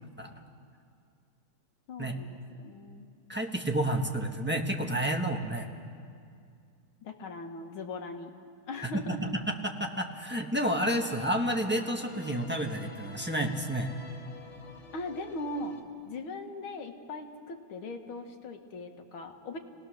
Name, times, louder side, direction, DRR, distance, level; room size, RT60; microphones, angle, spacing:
voice 1, 1.9-3.1 7.0-8.3 8.7-9.2 14.9-15.8 16.0-19.6, left 2 dB, 80° left, 4 dB, 2.3 m, -39 dB
voice 2, 3.3-5.7 8.8-13.9, right 1 dB, 5° right, 2 dB, 1.0 m, -30 dB
sound 1, 10.6-15.8, left 2 dB, 35° left, 1.8 m, -48 dB
29.5 x 18.5 x 6.5 m, 2.3 s
omnidirectional pair, 2.2 m